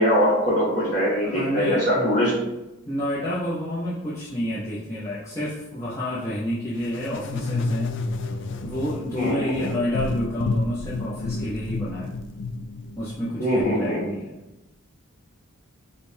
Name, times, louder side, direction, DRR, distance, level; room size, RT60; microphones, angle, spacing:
voice 1, 0.0-2.4 9.2-9.7 13.4-14.1, equal, 35° left, -4 dB, 1.4 m, -22 dB
voice 2, 1.2-2.2 2.8-7.9 8.6-12.1 13.0-14.4, left 1 dB, 10° left, -9 dB, 0.6 m, -29 dB
sound 1, 6.9-13.6, left 3 dB, 55° left, 0.3 m, -30 dB
5.1 x 2.2 x 4.4 m, 0.98 s
head